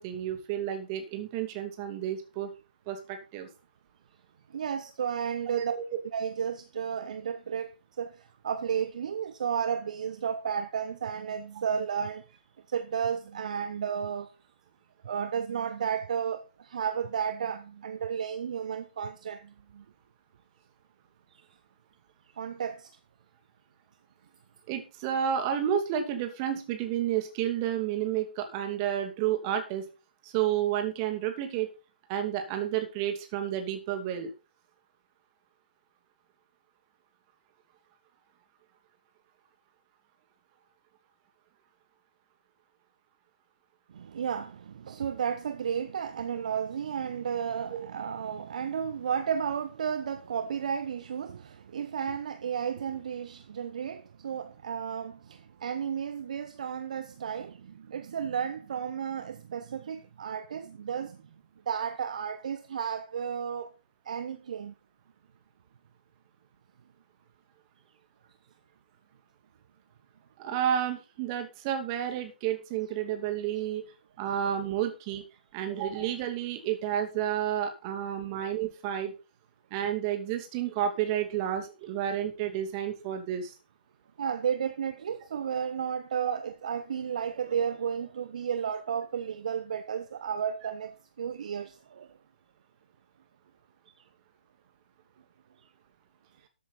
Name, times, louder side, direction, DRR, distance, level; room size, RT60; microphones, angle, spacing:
voice 1, 0.0-2.5 2.9-3.5 5.5-5.8 24.7-29.8 30.2-31.7 32.1-34.3 47.7-47.9 70.4-73.8 74.2-75.2 75.5-79.1 79.7-83.6, right 10 dB, 25° right, 2.4 m, -31 dB
voice 2, 4.5-5.7 6.1-7.7 8.0-12.2 12.7-14.3 15.0-19.8 22.4-22.9 43.9-61.2 61.7-63.7 64.1-64.7 78.4-78.5 84.2-92.1, right 7 dB, 50° right, 1.0 m, -33 dB
13.5 x 8.4 x 4.2 m
figure-of-eight pair, 135°, 5 cm